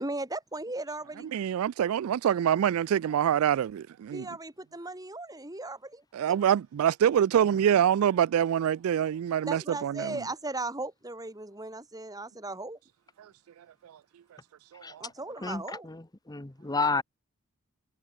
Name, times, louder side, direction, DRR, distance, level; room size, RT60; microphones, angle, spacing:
voice 1, 0.0-1.3 4.1-6.4 9.4-12.8 15.0-15.9, right 2 dB, 15° right, 2.7 m, -37 dB
voice 2, 1.3-4.3 6.1-10.2 13.2-13.3 13.8-14.0 14.7-15.1, right 9 dB, 75° right, 0.3 m, -25 dB
voice 3, 14.8-15.1 15.4-17.0, left 3 dB, 20° left, 0.8 m, -31 dB
head